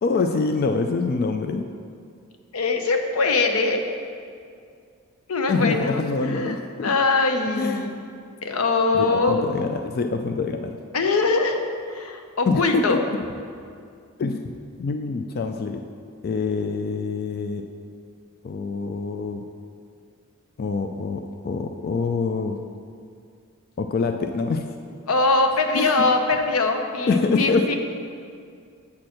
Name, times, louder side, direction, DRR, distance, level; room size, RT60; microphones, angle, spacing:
voice 1, 0.0-1.6 5.5-6.9 7.6-7.9 8.9-10.8 12.5-13.0 14.2-14.5 14.8-15.8 16.2-17.6 18.4-19.4 20.6-22.6 23.8-24.7 25.7-26.0 27.1-27.8, left 4 dB, 45° left, 6 dB, 0.3 m, -25 dB
voice 2, 2.5-3.8 5.3-7.9 8.4-9.5 10.9-11.6 11.9-13.0 25.1-27.8, left 3 dB, 90° left, 5 dB, 0.7 m, -22 dB
8.5 x 4.3 x 6.3 m, 2.3 s
head